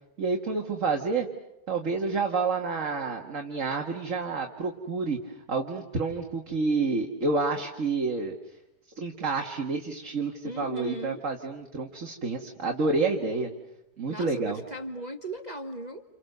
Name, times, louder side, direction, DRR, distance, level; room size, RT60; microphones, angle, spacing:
voice 1, 0.2-1.3 1.7-8.3 9.0-13.5 14.0-14.6, right 4 dB, 50° right, 2 dB, 2.1 m, -29 dB
voice 2, 10.4-11.2 14.1-16.0, right 1 dB, 25° right, 6 dB, 1.2 m, -37 dB
30.0 x 29.5 x 6.7 m, 0.89 s
omnidirectional pair, 1.8 m